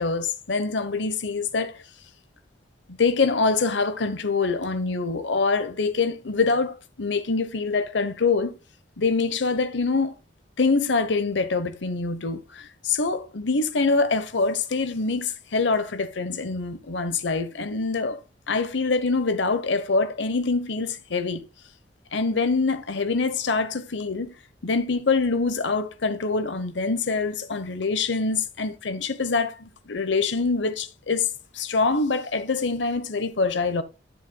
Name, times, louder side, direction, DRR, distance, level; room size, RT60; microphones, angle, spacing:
voice 1, 0.0-1.8 2.9-8.5 9.0-10.1 10.6-18.2 18.5-21.4 22.1-24.3 24.6-33.8, left 4 dB, 85° left, 0.9 m, -25 dB
11.0 x 7.2 x 2.2 m
head